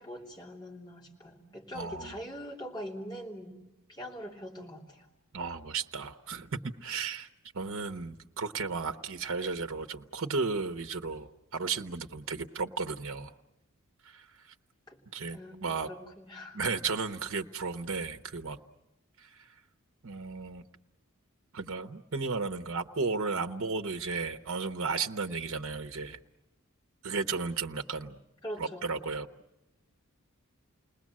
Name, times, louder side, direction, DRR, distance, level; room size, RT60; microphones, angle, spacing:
voice 1, 0.0-3.6 3.9-5.1 14.9-15.0 15.3-15.6 15.9-16.6 28.4-28.9, equal, 20° left, -1 dB, 3.1 m, -42 dB
voice 2, 1.7-2.2 5.3-7.3 7.5-13.3 14.0-14.5 15.1-15.9 16.5-18.6 19.2-19.5 20.0-20.7 21.5-26.2 27.0-28.2 28.6-29.3, right 4 dB, 65° right, 8 dB, 1.0 m, -34 dB
29.5 x 20.0 x 7.5 m, 0.94 s
head